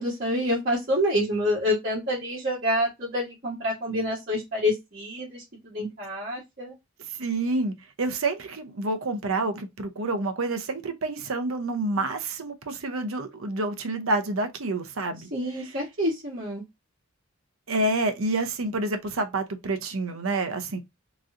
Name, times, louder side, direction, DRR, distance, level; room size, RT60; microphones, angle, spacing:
voice 1, 0.0-6.7 15.3-16.6, left 1 dB, 45° right, 1.4 m, -27 dB
voice 2, 7.1-15.3 15.5-15.8 17.7-20.8, right 2 dB, 75° right, 0.7 m, -28 dB
3.7 x 3.0 x 2.5 m
head